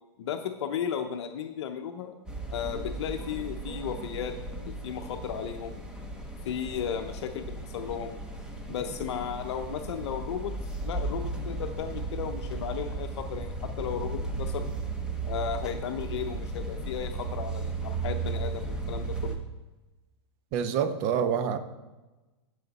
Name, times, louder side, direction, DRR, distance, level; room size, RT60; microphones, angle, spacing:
voice 1, 0.2-2.1 2.5-4.3 4.6-5.8 6.4-8.2 8.7-10.5 10.8-14.7 15.2-19.4, left 8 dB, 70° left, 6 dB, 0.7 m, -35 dB
sound 1, 2.3-19.4, right 3 dB, 5° right, 1.1 m, -35 dB
voice 2, 20.5-21.6, right 7 dB, 40° right, 9 dB, 0.9 m, -27 dB
15.0 x 5.0 x 4.1 m, 1.1 s
hypercardioid pair, 140°, 15 cm